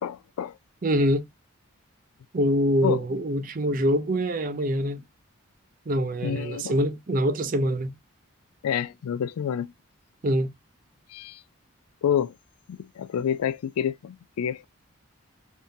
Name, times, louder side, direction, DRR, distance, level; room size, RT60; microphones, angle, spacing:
voice 1, 0.0-0.6 2.8-3.0 6.2-6.8 8.6-9.7 11.1-11.4 12.0-12.3 12.7-14.6, left 8 dB, 85° left, 0.3 m, -28 dB
voice 2, 0.8-1.3 2.3-5.0 5.9-8.0 10.2-10.5, equal, 40° right, 0.5 m, -24 dB
3.6 x 2.6 x 2.6 m
head